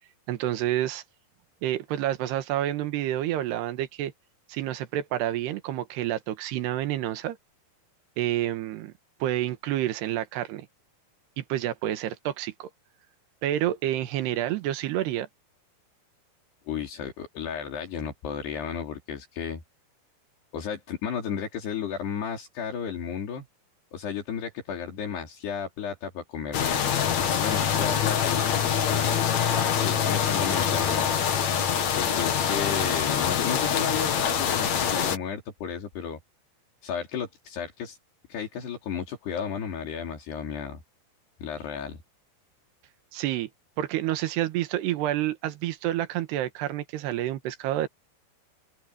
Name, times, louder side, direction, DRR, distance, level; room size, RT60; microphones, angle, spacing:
voice 1, 0.3-1.0 1.6-4.1 4.5-7.4 8.2-8.9 9.2-10.7 11.4-12.7 13.4-15.3 43.1-43.5 43.8-47.9, right 13 dB, 80° right, 3.4 m, -29 dB
voice 2, 16.7-19.6 20.5-23.4 23.9-29.1 29.8-31.1 32.0-36.2 36.8-38.0 38.3-40.8 41.4-42.0, left 7 dB, 75° left, 5.5 m, -33 dB
sound 1, 26.5-35.2, left 8 dB, 50° left, 2.7 m, -25 dB
open air
omnidirectional pair, 4.8 m